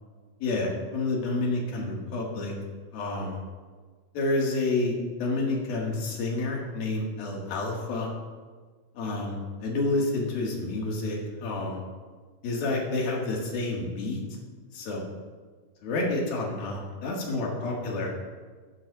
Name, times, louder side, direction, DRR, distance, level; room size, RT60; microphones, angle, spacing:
voice 1, 0.4-2.5 2.9-3.4 4.1-8.1 9.0-11.8 12.4-14.2 14.7-15.0 15.8-18.1, left 2 dB, 80° left, -2 dB, 3.7 m, -29 dB
16.0 x 11.0 x 2.5 m, 1.5 s
omnidirectional pair, 4.2 m